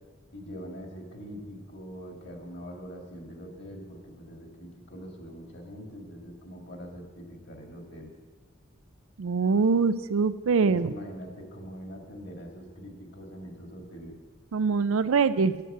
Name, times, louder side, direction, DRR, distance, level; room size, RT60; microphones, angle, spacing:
voice 1, 0.3-8.1 10.6-14.1, equal, 55° left, 2 dB, 1.9 m, -43 dB
voice 2, 9.2-10.9 14.5-15.6, right 5 dB, 80° right, 14 dB, 0.4 m, -24 dB
9.1 x 9.0 x 6.7 m, 1.5 s
head